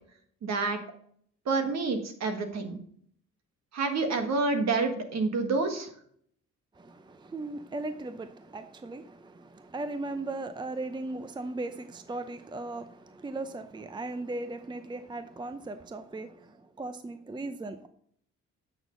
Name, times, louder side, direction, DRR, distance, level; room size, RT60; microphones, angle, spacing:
voice 1, 0.4-0.8 1.4-2.8 3.7-5.9, right 3 dB, 60° right, 6 dB, 1.6 m, -28 dB
voice 2, 6.8-16.4 16.8-17.9, right 2 dB, 15° right, 10 dB, 0.6 m, -37 dB
8.7 x 6.3 x 3.9 m, 0.62 s
cardioid pair, 90°, 30 cm